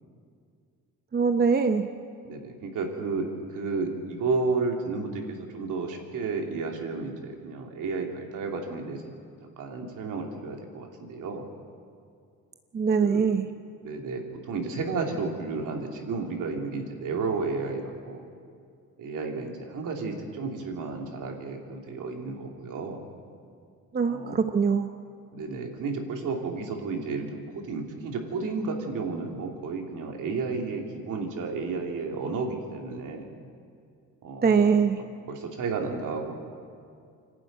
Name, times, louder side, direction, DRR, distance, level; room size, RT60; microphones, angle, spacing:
voice 1, 1.1-1.9 12.7-13.4 23.9-24.9 34.4-35.0, right 5 dB, 30° right, 7 dB, 0.9 m, -22 dB
voice 2, 2.2-9.1 9.6-11.5 13.0-13.2 13.8-18.3 19.0-23.0 24.0-24.4 25.3-33.3 34.2-34.7 35.3-36.3, right 4 dB, 65° right, 1 dB, 3.1 m, -32 dB
25.0 x 12.0 x 9.3 m, 2.3 s
cardioid pair, 105°, 34 cm